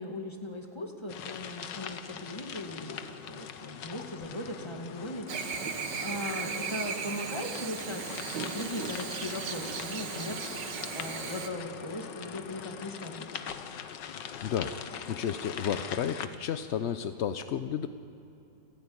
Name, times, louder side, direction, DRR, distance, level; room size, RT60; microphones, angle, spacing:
voice 1, 0.0-5.7 6.0-10.4 10.9-13.3, left 1 dB, 15° left, 2 dB, 2.2 m, -39 dB
sound 1, 1.1-16.3, left 8 dB, 85° left, 1.6 m, -42 dB
Chirp tweet / Buzz, 5.3-11.5, right 5 dB, 80° right, 2.0 m, -36 dB
voice 2, 14.4-14.8 15.1-17.9, left 8 dB, 65° left, 10 dB, 0.7 m, -32 dB
28.5 x 11.5 x 9.6 m, 2.9 s
omnidirectional pair, 1.9 m